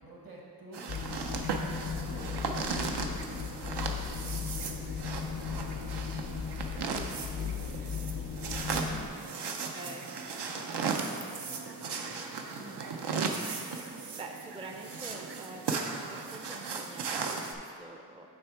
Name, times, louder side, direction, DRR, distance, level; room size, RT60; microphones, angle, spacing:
voice 1, 0.0-0.9 1.7-6.1 6.9-10.0 10.3-13.6, right 1 dB, 60° right, -3 dB, 1.4 m, -52 dB
sound 1, 0.7-17.5, right 5 dB, 85° right, 0.6 m, -36 dB
sound 2, 0.9-9.1, left 6 dB, 60° left, 0.6 m, -37 dB
voice 2, 8.8-10.1 14.2-18.3, right 2 dB, 15° right, 2 dB, 0.4 m, -47 dB
8.8 x 3.5 x 4.5 m, 2.4 s
wide cardioid pair, 80°, 40 cm